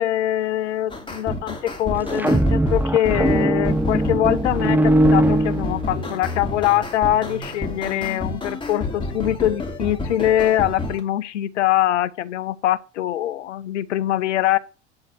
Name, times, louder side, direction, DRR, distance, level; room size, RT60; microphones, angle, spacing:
voice 1, 0.0-14.6, left 12 dB, 80° left, 0.7 m, -23 dB
sound 1, 0.9-11.0, left 2 dB, 15° left, 2.6 m, -29 dB
sound 2, 2.0-6.2, right 1 dB, 5° right, 0.6 m, -20 dB
10.5 x 4.0 x 6.3 m
hypercardioid pair, 70°, 35 cm